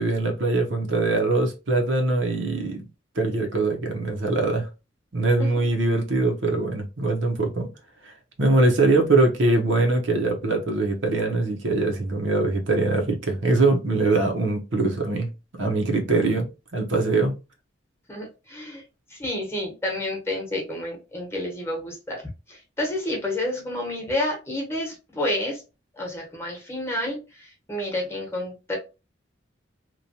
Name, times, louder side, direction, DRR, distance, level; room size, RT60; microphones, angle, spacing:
voice 1, 0.0-2.8 3.1-4.7 5.1-7.7 8.4-15.3 15.6-17.3, right 2 dB, 70° right, 0.8 m, -22 dB
voice 2, 18.1-18.8 19.1-25.6 25.9-28.8, left 1 dB, 15° left, 1.0 m, -30 dB
3.0 x 2.2 x 2.7 m
head